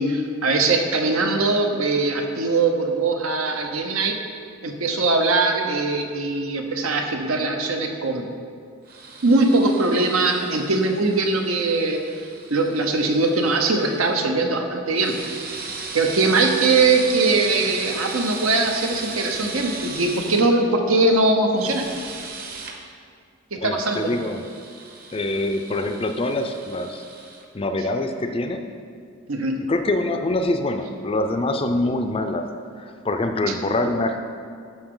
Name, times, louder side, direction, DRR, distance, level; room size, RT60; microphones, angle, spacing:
voice 1, 0.0-4.2 4.6-8.3 9.2-12.0 12.5-15.2 15.9-21.9 23.5-24.1 29.3-29.5, right 3 dB, 85° right, 3 dB, 0.9 m, -21 dB
sound 1, 8.9-14.1 14.9-20.5 21.5-22.8 23.8-27.5, right 4 dB, 45° right, 0.9 m, -36 dB
voice 2, 23.6-24.5 25.1-27.0 27.5-28.7 29.7-32.5 32.8-34.2, left 2 dB, 25° left, 6 dB, 0.4 m, -25 dB
11.5 x 5.9 x 3.8 m, 2.2 s
head